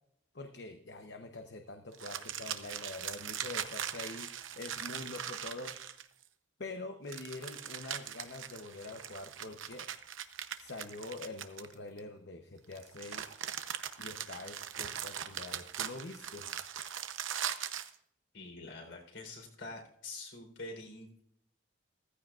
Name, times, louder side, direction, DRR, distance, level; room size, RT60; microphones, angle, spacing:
voice 1, 0.3-5.7 6.6-9.9 10.6-13.4 14.0-16.5, left 2 dB, 60° left, 5 dB, 0.9 m, -45 dB
sound 1, 1.9-6.2 7.1-12.0 12.7-17.9, right 9 dB, 85° right, 0.8 m, -40 dB
voice 2, 18.3-21.2, left 2 dB, 75° left, 2 dB, 4.0 m, -46 dB
16.0 x 15.0 x 2.5 m, 0.70 s
head